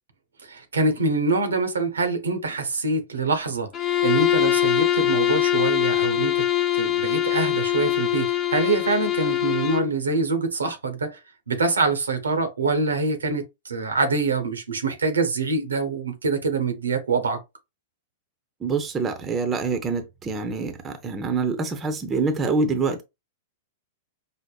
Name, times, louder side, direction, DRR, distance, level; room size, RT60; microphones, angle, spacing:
voice 1, 0.4-6.4 6.7-11.2 11.5-17.4, right 3 dB, 85° right, 0.7 m, -25 dB
Bowed string instrument, 3.7-9.9, left 11 dB, 30° left, 0.4 m, -23 dB
voice 2, 18.6-23.0, right 4 dB, 20° right, 0.7 m, -26 dB
5.1 x 2.1 x 2.3 m
hypercardioid pair, 105°, 0 cm